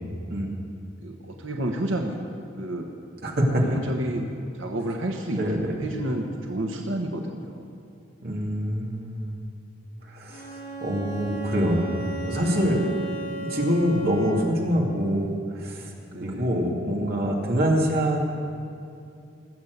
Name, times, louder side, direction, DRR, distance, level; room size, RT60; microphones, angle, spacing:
voice 1, 1.0-2.2 2.6-2.9 3.6-5.4 5.7-7.8 12.9-13.0 16.1-16.5, right 1 dB, 80° right, 2 dB, 1.2 m, -30 dB
voice 2, 3.2-3.8 5.4-5.8 8.2-9.4 10.0-12.8 13.2-15.9 16.2-18.2, equal, 50° right, -2 dB, 2.4 m, -25 dB
Bowed string instrument, 10.3-14.7, right 2 dB, 65° left, 3.9 m, -35 dB
18.5 x 7.2 x 8.1 m, 2.6 s
head